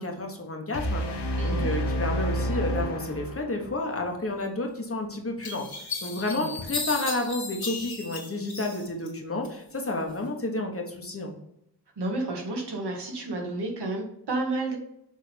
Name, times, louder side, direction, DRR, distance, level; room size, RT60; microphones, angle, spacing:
voice 1, 0.0-5.7 6.0-11.3, left 2 dB, 35° left, 2 dB, 1.3 m, -31 dB
sound 1, 0.7-3.8, equal, 80° left, 1.3 m, -29 dB
voice 2, 1.4-1.7 6.3-6.6 12.0-14.8, right 2 dB, 75° right, 0 dB, 2.0 m, -31 dB
sound 2, 4.7-4.8 5.4-9.1 9.4-10.2, left 4 dB, 60° left, 2.0 m, -35 dB
6.5 x 3.7 x 5.2 m, 0.78 s
wide cardioid pair, 110°, 41 cm